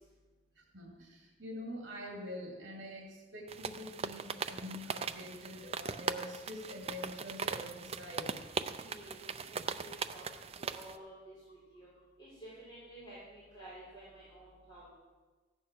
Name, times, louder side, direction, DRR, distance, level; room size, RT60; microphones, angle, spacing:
voice 1, 0.6-8.4, left 1 dB, 65° right, -1 dB, 2.7 m, -45 dB
sound 1, 3.5-11.0, right 5 dB, 30° right, 0.5 m, -40 dB
voice 2, 8.7-11.3 11.7-11.9 12.2-14.9, right 1 dB, 25° left, -10 dB, 4.8 m, -52 dB
15.0 x 9.1 x 6.1 m, 1.3 s
head